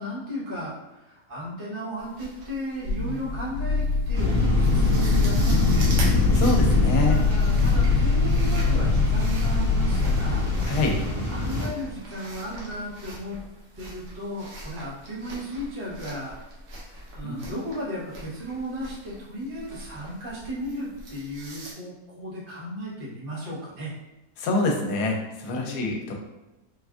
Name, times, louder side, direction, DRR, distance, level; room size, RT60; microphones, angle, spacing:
voice 1, 0.0-5.9 7.1-10.5 11.3-13.4 13.8-16.4 17.1-23.9 25.6-25.9, equal, 35° right, -9 dB, 1.1 m, -35 dB
sound 1, 2.0-21.7, right 1 dB, 55° right, 0.9 m, -42 dB
sound 2, 2.8-11.0, left 4 dB, 50° left, 1.4 m, -23 dB
sound 3, 4.1-11.7, left 1 dB, 80° right, 1.5 m, -25 dB
voice 2, 6.3-7.2 10.6-11.0 17.2-17.4 24.4-26.1, left 2 dB, 80° left, 1 dB, 1.1 m, -26 dB
3.6 x 2.5 x 2.3 m, 1.0 s
omnidirectional pair, 1.7 m